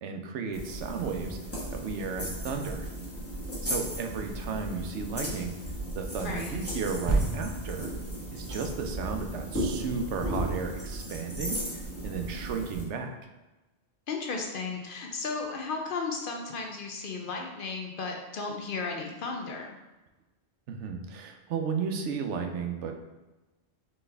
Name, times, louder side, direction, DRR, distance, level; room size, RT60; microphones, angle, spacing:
voice 1, 0.0-1.4 1.7-2.9 3.6-5.6 6.0-7.9 8.3-13.2 20.7-23.0, right 5 dB, 90° right, 4 dB, 0.9 m, -34 dB
sound 1, 0.5-12.8, right 1 dB, 15° left, 1.1 m, -36 dB
voice 2, 6.2-6.6 14.1-19.8, left 4 dB, 55° left, 2 dB, 0.7 m, -34 dB
sound 2, 7.1-10.7 11.3-11.4, right 2 dB, 15° right, 0.6 m, -33 dB
4.2 x 3.4 x 3.3 m, 1.1 s
omnidirectional pair, 1.2 m